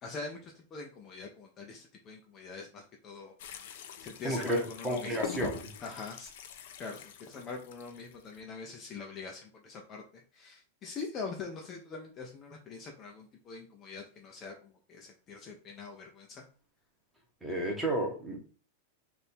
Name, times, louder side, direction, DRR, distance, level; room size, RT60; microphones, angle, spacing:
voice 1, 0.0-5.2 5.8-6.3 6.8-10.0 10.3-16.4, left 4 dB, 25° left, 1 dB, 0.6 m, -43 dB
sound 1, 3.4-8.4, left 9 dB, 60° left, 0.6 m, -44 dB
voice 2, 4.2-5.7 17.4-18.4, right 1 dB, 5° right, 0 dB, 1.1 m, -32 dB
3.4 x 2.6 x 4.3 m, 0.38 s
supercardioid pair, 160°, 0 cm